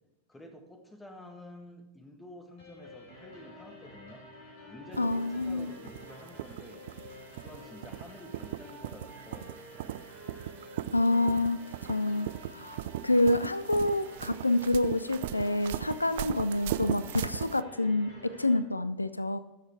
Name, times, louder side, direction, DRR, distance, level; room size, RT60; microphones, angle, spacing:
voice 1, 0.3-4.2 4.6-6.9 7.3-10.2, left 1 dB, 10° left, 5 dB, 1.6 m, -50 dB
sound 1, 2.6-18.6, left 1 dB, 45° left, 4.2 m, -50 dB
sound 2, 4.9-17.6, right 13 dB, 55° right, 0.3 m, -39 dB
voice 2, 5.0-5.7 10.9-19.4, left 2 dB, 85° left, 14 dB, 0.4 m, -28 dB
13.5 x 6.6 x 4.5 m, 0.97 s
figure-of-eight pair, 90°, 0 cm